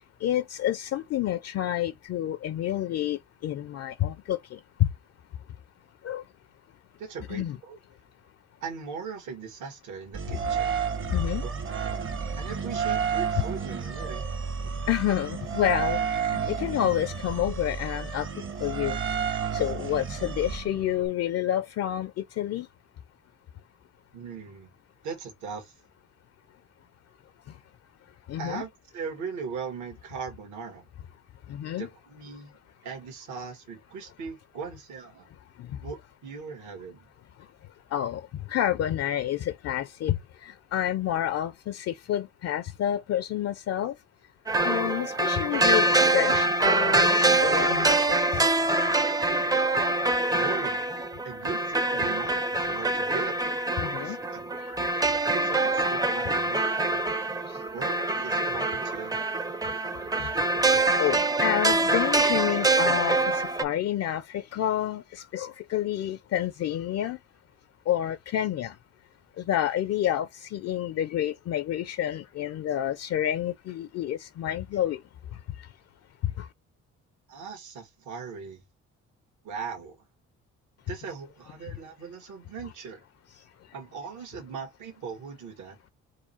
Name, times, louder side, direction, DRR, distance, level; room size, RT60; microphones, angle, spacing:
voice 1, 0.2-4.6 6.0-6.2 7.3-7.6 11.1-11.4 14.9-18.3 18.6-19.0 19.5-22.7 28.3-28.6 31.5-31.9 35.6-35.7 37.9-38.2 38.5-43.9 44.6-45.9 46.1-48.4 53.8-54.2 60.2-60.3 60.6-60.7 61.0-67.2 67.9-68.7 69.4-75.0 76.4-76.5, left 11 dB, 55° left, 0.4 m, -29 dB
voice 2, 7.0-7.8 8.6-10.7 11.4-11.5 12.4-14.3 24.1-24.7 25.0-25.7 28.4-30.9 31.8-32.6 32.8-35.3 35.8-37.1 50.3-50.8 51.2-53.4 54.0-54.5 55.3-57.0 57.7-59.1 77.3-78.6 79.4-80.0 80.9-83.0 83.7-85.8, right 5 dB, 80° right, 1.6 m, -39 dB
sound 1, 10.1-21.1, right 6 dB, 45° right, 0.9 m, -31 dB
sound 2, 44.5-63.6, right 2 dB, 15° right, 0.4 m, -25 dB
4.7 x 2.2 x 4.2 m
cardioid pair, 90°, 30 cm